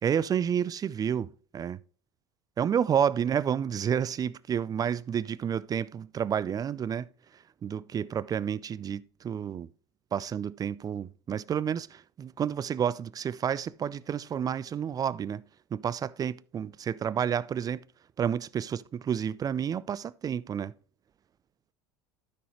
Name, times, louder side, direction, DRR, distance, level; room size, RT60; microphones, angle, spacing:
voice 1, 0.0-1.8 2.6-9.7 10.1-15.4 15.7-17.8 18.2-20.7, right 8 dB, 25° right, 0.4 m, -30 dB
12.5 x 6.2 x 3.1 m
hypercardioid pair, 80°, 14 cm